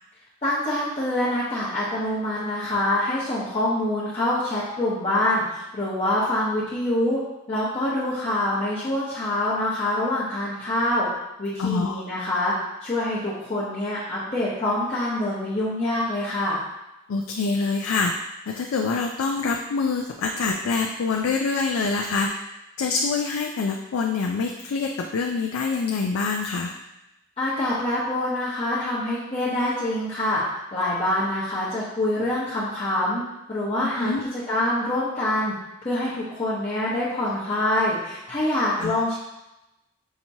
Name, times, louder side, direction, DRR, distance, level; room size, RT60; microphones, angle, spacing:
voice 1, 0.4-7.2 7.5-11.1 11.4-12.5 12.8-16.6 27.4-30.4 30.7-33.2 33.5-35.5 35.8-39.2, left 1 dB, 30° left, -11 dB, 0.9 m, -25 dB
voice 2, 11.6-12.0 17.1-18.1 18.5-22.3 22.8-26.7 34.0-34.2 38.8-38.9, left 4 dB, 85° left, 1 dB, 0.4 m, -25 dB
5.7 x 2.9 x 2.7 m, 0.92 s
head